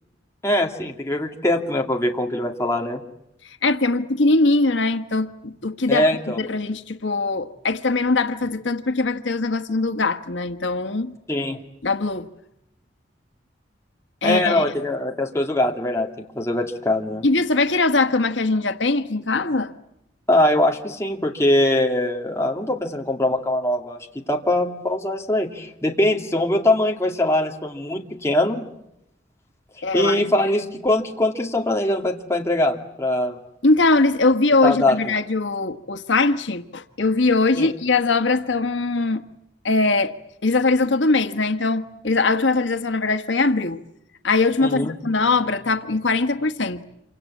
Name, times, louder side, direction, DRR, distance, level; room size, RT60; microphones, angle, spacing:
voice 1, 0.4-3.0 5.9-6.4 11.3-11.6 14.2-17.3 20.3-28.6 29.9-33.4 34.6-35.0 37.6-37.7 44.6-44.9, left 1 dB, 15° left, 2.3 m, -22 dB
voice 2, 3.4-6.1 6.4-11.1 11.8-12.3 14.2-14.7 17.2-19.7 29.8-30.2 33.6-39.2 39.6-40.2 40.4-43.8 44.2-46.8, left 3 dB, 90° left, 1.4 m, -21 dB
27.5 x 25.0 x 8.4 m
head